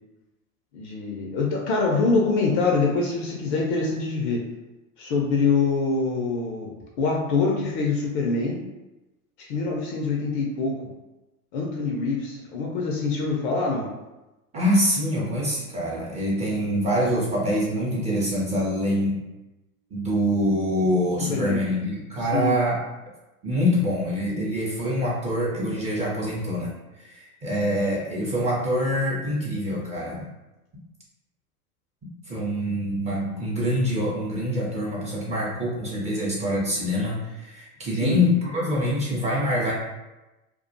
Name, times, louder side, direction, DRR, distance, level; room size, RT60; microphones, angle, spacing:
voice 1, 0.7-4.5 5.0-8.6 9.5-10.9 11.5-13.9 21.3-21.6 22.2-22.6 38.0-38.2, left 4 dB, 40° left, -1 dB, 0.4 m, -25 dB
voice 2, 14.5-19.2 19.9-22.8 23.4-30.3 32.3-39.7, equal, 15° right, -6 dB, 0.5 m, -25 dB
2.3 x 2.2 x 2.5 m, 1.0 s
hypercardioid pair, 100°, 45 cm